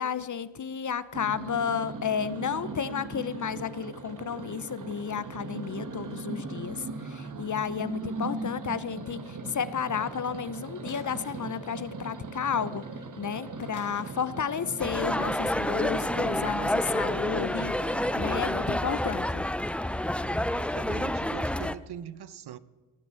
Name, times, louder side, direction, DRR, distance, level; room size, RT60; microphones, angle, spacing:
voice 1, 0.0-12.8 13.2-17.7 18.1-19.4, left 7 dB, 40° left, 0.8 m, -32 dB
sound 1, 1.1-18.8, right 3 dB, 40° right, 1.5 m, -39 dB
sound 2, 9.4-10.2 10.9-11.6 12.4-12.5 12.7-13.0 13.6-14.1 16.0-16.1, left 4 dB, 85° left, 3.5 m, -50 dB
sound 3, 14.8-21.8, left 1 dB, 5° left, 0.4 m, -29 dB
voice 2, 20.2-22.6, right 9 dB, 55° right, 0.8 m, -42 dB
19.5 x 9.3 x 7.6 m
cardioid pair, 75°, 47 cm